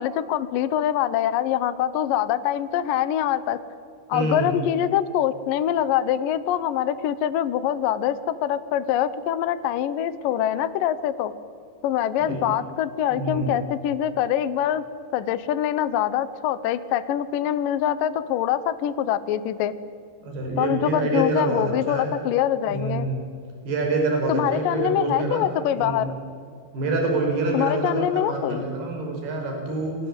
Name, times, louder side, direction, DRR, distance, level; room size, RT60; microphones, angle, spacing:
voice 1, 0.0-3.6 4.1-11.3 11.8-14.8 15.1-19.7 20.6-23.1 24.3-26.1 27.5-28.6, left 11 dB, 75° left, 13 dB, 2.0 m, -24 dB
voice 2, 4.1-4.6 12.2-12.4 13.1-13.6 20.2-22.1 22.7-23.2 23.7-25.5 25.8-26.1 26.7-30.0, right 2 dB, 60° right, 1 dB, 7.2 m, -26 dB
29.0 x 21.0 x 9.0 m, 2.3 s
omnidirectional pair, 5.1 m